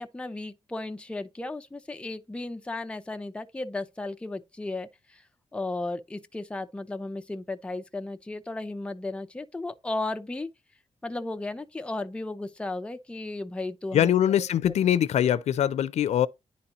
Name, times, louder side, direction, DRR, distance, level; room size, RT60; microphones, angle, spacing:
voice 1, 0.0-5.2 5.5-10.5 11.0-14.1, left 2 dB, 10° left, 0.6 m, -35 dB
voice 2, 13.9-16.3, left 10 dB, 85° left, 0.4 m, -23 dB
10.5 x 4.2 x 2.5 m
wide cardioid pair, 135°, 11 cm